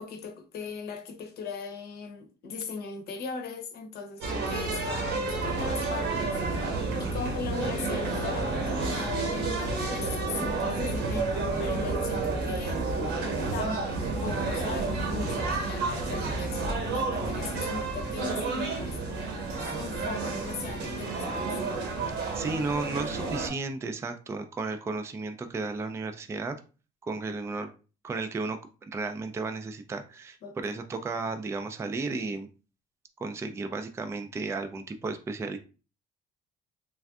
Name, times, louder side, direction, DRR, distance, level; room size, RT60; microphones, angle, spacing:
voice 1, 0.0-12.8 13.5-13.9 14.2-19.0 19.6-21.6 30.4-30.7, left 5 dB, 70° left, 0.8 m, -39 dB
sound 1, 4.2-23.5, right 3 dB, 80° right, 1.0 m, -30 dB
voice 2, 22.3-26.6 27.0-27.7 28.0-28.6 28.9-32.5 33.2-35.6, right 3 dB, 15° right, 0.3 m, -33 dB
3.3 x 2.5 x 2.3 m
cardioid pair, 110°, 17 cm